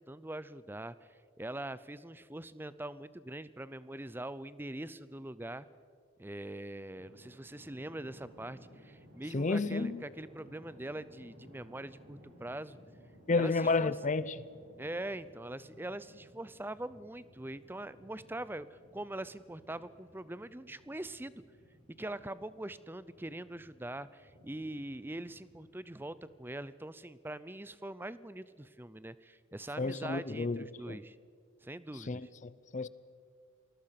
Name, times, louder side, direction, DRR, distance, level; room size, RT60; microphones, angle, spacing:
voice 1, 0.0-5.7 6.2-12.8 13.3-13.9 14.8-21.4 22.0-31.2 31.6-32.3, right 1 dB, 10° right, 0.5 m, -43 dB
sound 1, 6.9-26.6, equal, 45° right, 6.8 m, -59 dB
voice 2, 9.3-10.0 13.3-14.3 29.8-31.0 32.1-32.9, left 3 dB, 35° left, 0.5 m, -31 dB
28.0 x 20.5 x 5.8 m
head